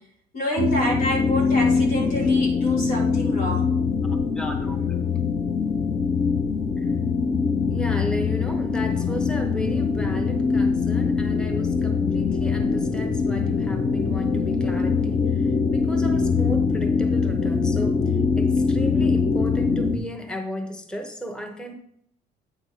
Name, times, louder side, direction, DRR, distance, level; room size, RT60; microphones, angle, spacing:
voice 1, 0.3-3.7, equal, 85° left, -2 dB, 2.3 m, -27 dB
sound 1, 0.6-20.0, left 5 dB, 35° left, 0.7 m, -23 dB
voice 2, 4.1-5.0 6.8-7.0 7.7-21.7, equal, 5° left, 4 dB, 0.9 m, -35 dB
9.1 x 3.4 x 5.5 m, 0.69 s
cardioid pair, 110°, 17 cm